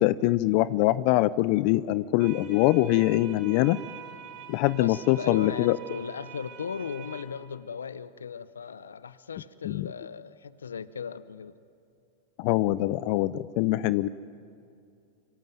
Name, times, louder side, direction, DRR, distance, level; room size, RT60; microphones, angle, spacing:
voice 1, 0.0-3.8 4.5-5.8 9.6-9.9 12.4-14.1, left 17 dB, 55° left, 17 dB, 0.6 m, -23 dB
sound 1, 2.2-7.2, right 8 dB, 55° right, 5.8 m, -45 dB
voice 2, 4.8-11.5, left 6 dB, 90° left, 16 dB, 0.8 m, -37 dB
24.5 x 24.0 x 9.4 m, 2.4 s
hypercardioid pair, 100°, 0 cm